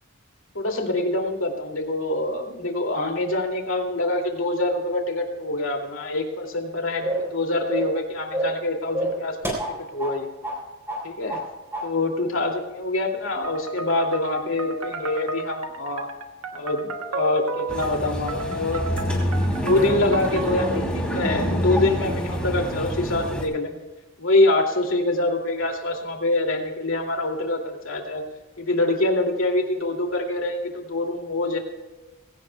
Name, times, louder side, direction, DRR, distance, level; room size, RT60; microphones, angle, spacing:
voice 1, 0.5-9.4 9.9-10.3 11.0-11.4 11.8-16.1 16.5-18.8 19.5-23.8 24.2-28.2 28.6-31.6, left 2 dB, 65° left, 2 dB, 2.5 m, -25 dB
sound 1, 7.0-7.3 7.7-8.0 8.3-8.6 8.9-10.2 10.4-10.6 10.9-11.5 11.7-11.9, right 1 dB, 10° right, 3.5 m, -27 dB
sound 2, 13.4-20.8, right 2 dB, 85° right, 1.4 m, -32 dB
sound 3, 17.7-23.4, equal, 5° left, 2.9 m, -27 dB
21.0 x 17.0 x 2.3 m, 1.2 s
head